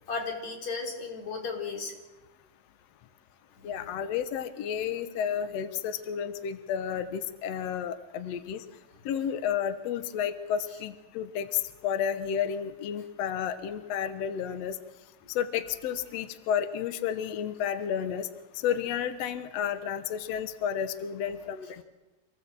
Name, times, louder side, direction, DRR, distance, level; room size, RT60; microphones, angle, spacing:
voice 1, 0.0-1.9 3.6-3.8 15.2-15.3, left 4 dB, 45° left, 1 dB, 4.9 m, -35 dB
voice 2, 3.6-8.6 9.0-14.8 15.3-18.3 18.5-21.8, left 8 dB, 75° left, 9 dB, 1.5 m, -31 dB
27.0 x 18.0 x 7.6 m, 1.1 s
omnidirectional pair, 4.5 m